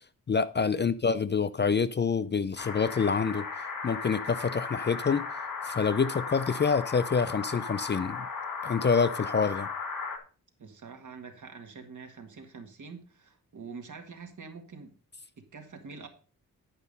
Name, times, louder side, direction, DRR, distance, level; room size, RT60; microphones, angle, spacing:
voice 1, 0.3-3.5 3.8-5.3 5.6-8.3 8.6-9.7, left 5 dB, 30° left, 0.5 m, -27 dB
sound 1, 2.6-10.2, left 5 dB, 65° left, 2.2 m, -36 dB
voice 2, 10.6-14.9 15.4-16.1, right 5 dB, 60° right, 1.9 m, -45 dB
10.5 x 5.4 x 5.3 m
wide cardioid pair, 110°, 34 cm